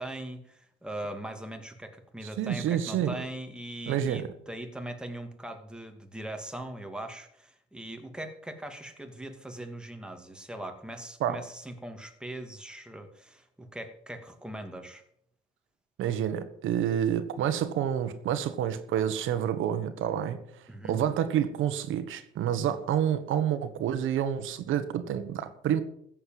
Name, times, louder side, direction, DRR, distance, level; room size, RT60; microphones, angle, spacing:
voice 1, 0.0-15.0 20.7-21.0, right 1 dB, 5° right, 4 dB, 2.5 m, -40 dB
voice 2, 2.4-3.2 3.9-4.3 11.2-11.4 16.0-25.8, right 10 dB, 85° right, 11 dB, 1.4 m, -28 dB
14.5 x 7.7 x 7.7 m, 0.71 s
cardioid pair, 90°, 20 cm